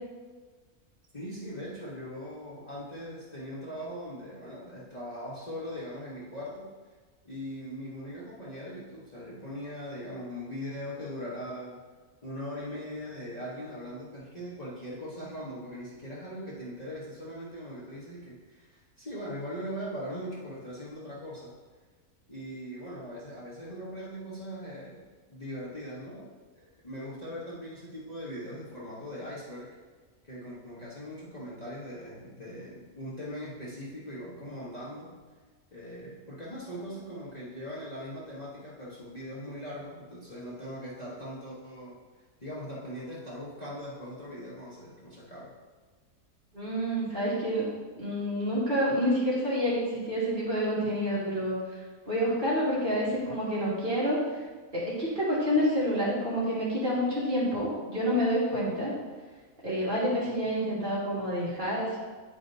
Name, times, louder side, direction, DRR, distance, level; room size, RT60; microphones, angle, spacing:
voice 1, 1.1-6.7 7.2-11.8 12.2-21.5 22.3-25.0 25.3-26.3 26.5-29.7 30.2-35.1 35.7-42.0 42.4-45.5, equal, 30° left, -8 dB, 1.1 m, -40 dB
voice 2, 46.5-47.7 48.0-49.8 50.1-51.6 52.1-54.2 54.7-58.9 59.6-62.0, equal, 35° right, -9 dB, 2.2 m, -28 dB
9.4 x 4.9 x 2.7 m, 1.4 s
omnidirectional pair, 1.5 m